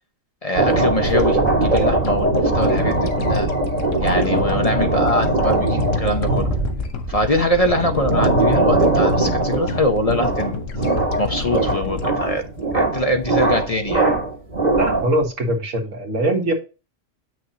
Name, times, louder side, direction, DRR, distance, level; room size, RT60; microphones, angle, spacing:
voice 1, 0.4-3.5 4.0-6.5 7.1-10.6 11.2-12.4 12.7-14.1, left 1 dB, 35° left, 0.8 m, -23 dB
sound 1, 0.5-15.3, right 2 dB, 35° right, 1.7 m, -20 dB
sound 2, 1.0-13.5, left 7 dB, 80° left, 1.3 m, -31 dB
voice 2, 14.7-16.5, right 1 dB, 85° right, 2.0 m, -22 dB
7.5 x 6.2 x 2.8 m
omnidirectional pair, 1.3 m